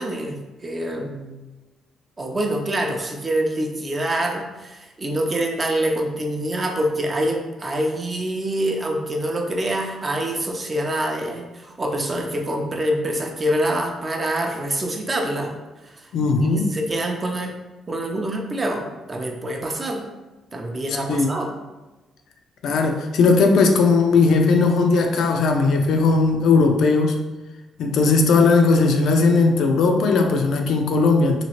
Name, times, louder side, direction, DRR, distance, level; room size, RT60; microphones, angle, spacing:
voice 1, 0.0-1.4 2.2-15.5 15.8-16.1 16.4-17.5 17.9-20.0 20.5-21.5, right 1 dB, 30° right, 2 dB, 0.5 m, -25 dB
voice 2, 16.1-16.7 21.1-21.3 22.6-27.2 27.8-31.4, left 4 dB, 75° left, 3 dB, 0.4 m, -18 dB
2.9 x 2.4 x 2.9 m, 1.1 s
cardioid pair, 90°, 0 cm